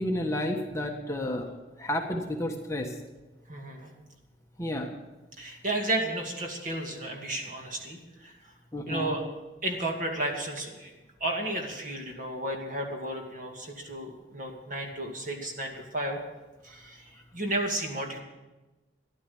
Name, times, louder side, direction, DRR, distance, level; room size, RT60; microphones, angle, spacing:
voice 1, 0.0-1.5 1.8-2.9 4.6-4.9 8.7-9.2, left 1 dB, 15° left, 2 dB, 1.3 m, -31 dB
voice 2, 3.5-3.9 5.4-8.3 8.9-9.2 9.6-10.9 11.2-16.2 16.6-18.2, right 1 dB, 45° right, 2 dB, 2.4 m, -33 dB
14.0 x 11.0 x 7.2 m, 1.1 s
head